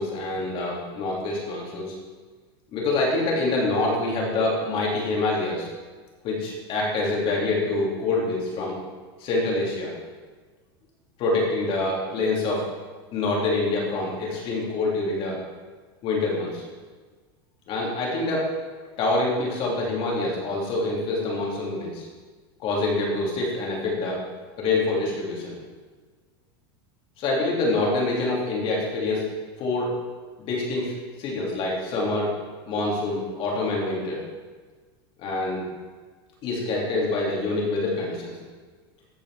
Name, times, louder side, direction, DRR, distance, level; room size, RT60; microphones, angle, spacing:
voice 1, 0.0-1.9 2.7-5.7 6.2-8.8 9.2-9.9 11.2-12.6 13.1-15.4 16.0-16.6 17.7-18.5 19.0-22.1 22.6-24.2 24.6-25.6 27.2-29.2 29.6-29.9 30.4-30.9 31.2-32.3 32.7-34.2 35.2-35.6 36.4-38.3, left 2 dB, 45° left, -3 dB, 3.0 m, -26 dB
14.5 x 5.0 x 4.9 m, 1.4 s
supercardioid pair, 130°, 13 cm